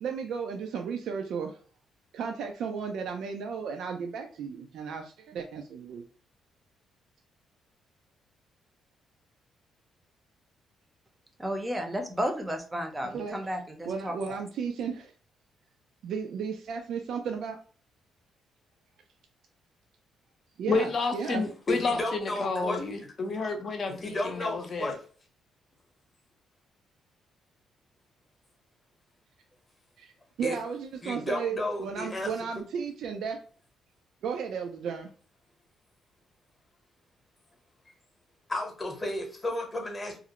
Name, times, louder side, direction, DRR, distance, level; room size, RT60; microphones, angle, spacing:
voice 1, 0.0-1.6 2.1-6.0 13.1-13.4 13.9-15.1 16.0-17.6 20.6-21.4 30.0-30.1 30.4-33.4 34.2-35.1, right 6 dB, 75° right, 4 dB, 0.3 m, -34 dB
voice 2, 11.4-14.4, equal, 15° right, 4 dB, 0.6 m, -33 dB
voice 3, 20.7-24.9, left 3 dB, 50° left, 4 dB, 0.6 m, -30 dB
voice 4, 21.7-22.8 23.9-24.9 30.4-30.6 31.0-32.3 38.5-40.2, left 1 dB, 25° left, 2 dB, 0.9 m, -32 dB
2.4 x 2.0 x 2.8 m, 0.41 s
cardioid pair, 90°, 0 cm